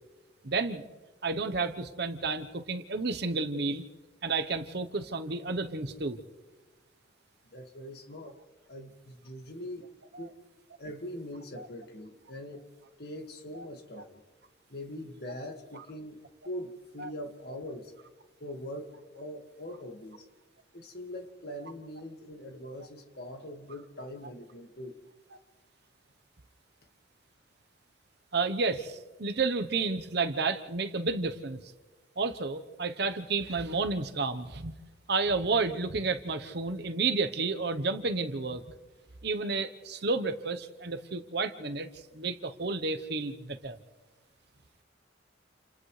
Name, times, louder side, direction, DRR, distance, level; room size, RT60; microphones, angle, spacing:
voice 1, 0.4-0.8 1.2-3.8 4.2-6.2 10.1-10.3 11.6-11.7 13.5-13.6 15.7-15.8 17.0-17.1 28.3-31.6 32.2-34.8 35.1-38.6 39.2-43.8, right 3 dB, 60° right, 10 dB, 1.0 m, -31 dB
voice 2, 7.5-8.4 8.7-9.9 10.2-10.4 10.8-12.7 13.0-14.2 14.7-16.2 16.4-17.9 18.4-20.3 20.7-25.0, left 1 dB, 55° left, 4 dB, 2.0 m, -42 dB
29.0 x 27.0 x 3.3 m, 1.3 s
head